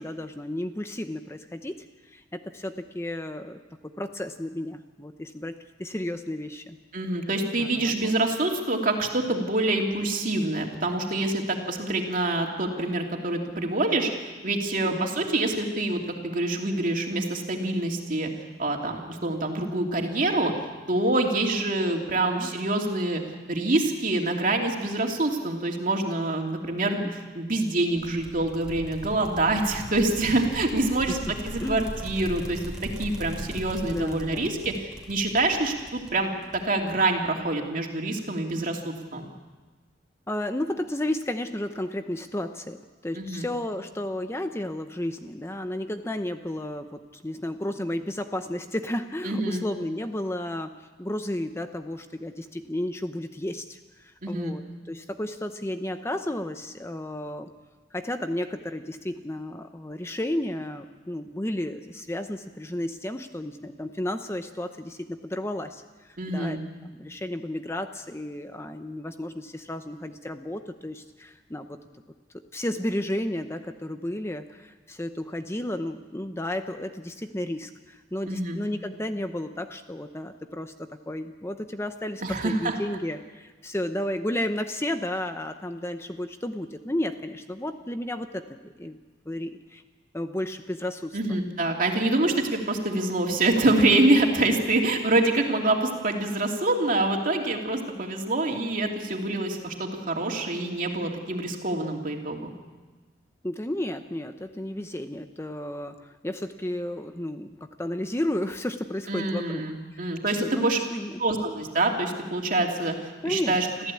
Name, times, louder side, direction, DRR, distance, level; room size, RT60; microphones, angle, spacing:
voice 1, 0.0-1.8 2.0-6.8 7.6-8.1 14.8-15.1 22.1-22.5 26.8-26.9 31.1-31.2 31.6-31.9 33.9-34.5 40.3-57.5 57.9-71.8 72.5-89.0 89.3-89.8 90.1-91.4 103.4-109.6 110.0-110.6 110.9-111.2 113.2-113.7, left 1 dB, 15° left, 8 dB, 0.8 m, -33 dB
voice 2, 6.9-14.1 14.4-16.0 16.2-18.3 18.6-20.5 20.9-23.2 23.5-27.1 27.3-34.7 35.1-36.3 36.6-39.2 43.1-43.5 49.2-49.6 54.2-54.5 66.2-66.6 78.3-78.6 82.2-82.8 91.1-102.5 109.1-110.8 111.2-112.9 113.2-113.7, right 2 dB, 50° right, 1 dB, 2.9 m, -26 dB
sound 1, 28.0-37.2, equal, 5° right, 3.0 m, -40 dB
26.5 x 15.0 x 8.5 m, 1.3 s
head